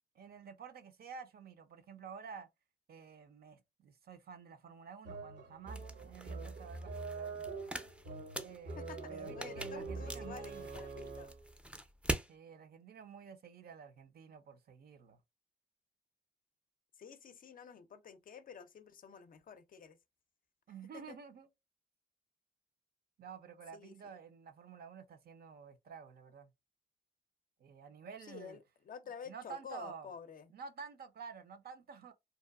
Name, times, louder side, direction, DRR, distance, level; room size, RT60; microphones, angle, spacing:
voice 1, 0.1-2.5 2.9-7.5 8.4-10.7 12.3-15.2 20.7-21.5 23.2-26.5 27.6-28.6 29.3-30.1 30.5-32.1, right 6 dB, 55° right, 0.6 m, -51 dB
sound 1, 5.0-11.5, right 4 dB, 75° right, 0.9 m, -44 dB
sound 2, 5.7-12.3, right 1 dB, 5° right, 0.4 m, -44 dB
voice 2, 8.8-11.3 17.0-20.0 20.9-21.2 23.7-24.2 28.2-30.5, left 6 dB, 50° left, 0.5 m, -50 dB
2.9 x 2.2 x 2.3 m
supercardioid pair, 55°, 19 cm